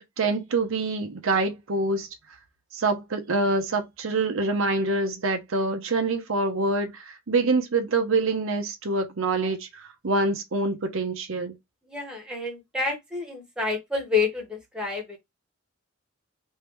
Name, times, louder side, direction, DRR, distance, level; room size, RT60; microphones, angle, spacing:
voice 1, 0.0-2.1 2.7-11.5, right 3 dB, 70° right, 0.7 m, -26 dB
voice 2, 11.9-15.2, left 4 dB, 5° right, 1.3 m, -29 dB
3.3 x 2.7 x 3.0 m
head